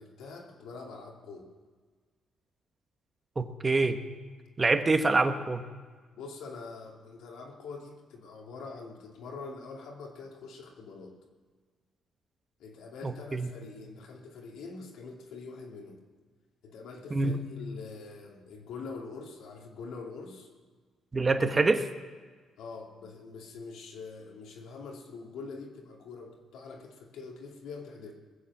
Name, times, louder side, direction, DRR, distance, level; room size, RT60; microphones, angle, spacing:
voice 1, 0.0-1.5 6.1-11.1 12.6-16.0 16.6-20.5 22.6-28.1, left 4 dB, 85° left, 0 dB, 2.6 m, -44 dB
voice 2, 3.4-4.0 4.6-5.6 13.0-13.5 17.1-17.4 21.1-21.8, right 3 dB, 25° right, 8 dB, 1.2 m, -25 dB
20.5 x 7.5 x 7.2 m, 1.5 s
cardioid pair, 90°, 0 cm